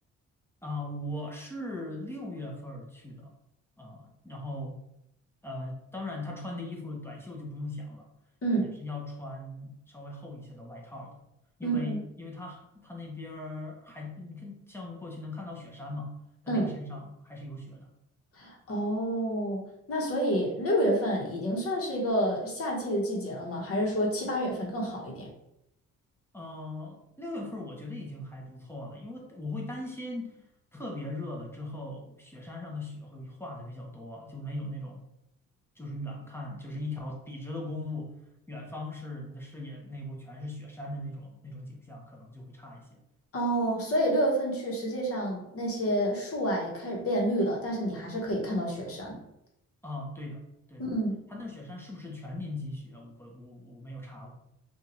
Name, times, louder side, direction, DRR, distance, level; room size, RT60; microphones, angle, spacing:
voice 1, 0.6-3.3 3.8-4.8 5.4-8.1 8.6-11.2 11.6-16.2 16.4-17.9 26.3-30.4 30.7-35.0 35.8-38.1 38.5-43.0 49.8-50.4 50.7-50.8 51.3-54.3, left 2 dB, 10° left, -1 dB, 0.6 m, -39 dB
voice 2, 8.4-8.7 11.6-12.0 16.5-16.7 18.3-25.3 43.3-49.2 50.8-51.2, right 1 dB, 50° left, -1 dB, 1.0 m, -29 dB
2.7 x 2.3 x 2.9 m, 0.82 s
cardioid pair, 90°, 30 cm